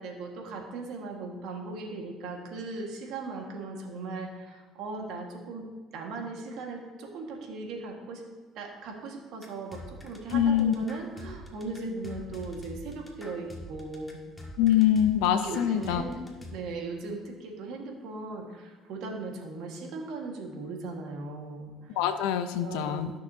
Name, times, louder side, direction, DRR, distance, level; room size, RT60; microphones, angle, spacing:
voice 1, 0.0-5.7 5.9-8.2 8.5-14.2 15.4-16.2 16.5-22.0 22.6-23.1, right 3 dB, 75° right, 1 dB, 1.7 m, -38 dB
sound 1, 9.4-16.5, equal, 15° left, 1.5 m, -44 dB
voice 2, 10.3-10.7 14.6-16.0 22.0-23.1, left 10 dB, 90° left, 10 dB, 0.6 m, -24 dB
14.0 x 6.5 x 2.8 m, 1.4 s
cardioid pair, 100°, 0 cm